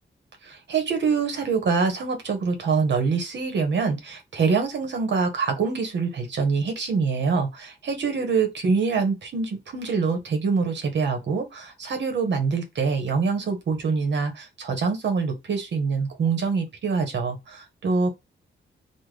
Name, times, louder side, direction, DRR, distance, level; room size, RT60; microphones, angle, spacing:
voice 1, 0.4-18.1, right 5 dB, 65° right, 1.0 m, -25 dB
3.3 x 2.1 x 3.3 m
wide cardioid pair, 140°, 19 cm